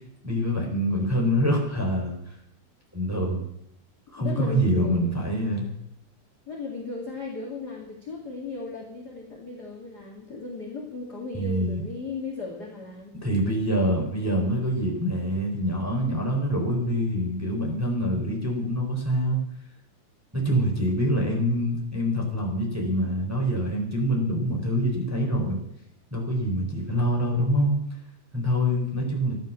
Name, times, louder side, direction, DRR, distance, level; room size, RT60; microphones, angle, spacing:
voice 1, 0.2-2.2 2.9-3.4 4.1-5.7 11.3-11.8 13.2-19.4 20.3-25.6 26.1-27.7 28.3-29.4, equal, 5° right, -1 dB, 3.5 m, -25 dB
voice 2, 4.2-5.1 6.5-13.2, left 3 dB, 30° left, -1 dB, 2.0 m, -36 dB
14.5 x 11.0 x 7.4 m, 0.77 s
omnidirectional pair, 4.6 m